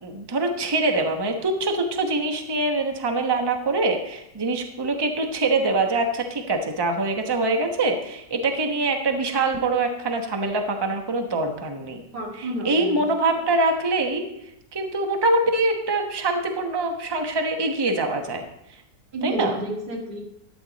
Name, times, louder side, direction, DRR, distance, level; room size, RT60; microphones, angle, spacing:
voice 1, 0.0-12.0 12.4-14.2 14.7-18.4 19.2-19.6, right 2 dB, 20° right, 4 dB, 0.9 m, -24 dB
voice 2, 12.1-13.1 19.1-20.2, right 1 dB, 85° right, 0 dB, 2.5 m, -30 dB
12.0 x 8.5 x 4.0 m, 0.81 s
omnidirectional pair, 1.7 m